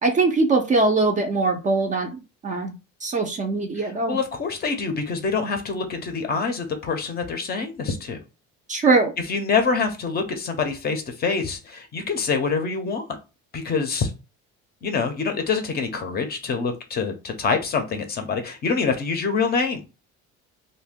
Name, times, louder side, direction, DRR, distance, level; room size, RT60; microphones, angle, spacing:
voice 1, 0.0-2.1 2.4-2.8 3.0-4.2 8.7-9.1, right 3 dB, 25° right, 3 dB, 0.4 m, -21 dB
voice 2, 3.8-8.2 9.3-13.0 13.5-14.1 14.8-19.8, left 5 dB, 35° left, 6 dB, 0.5 m, -25 dB
2.5 x 2.1 x 3.4 m, 0.29 s
cardioid pair, 150°, 30 cm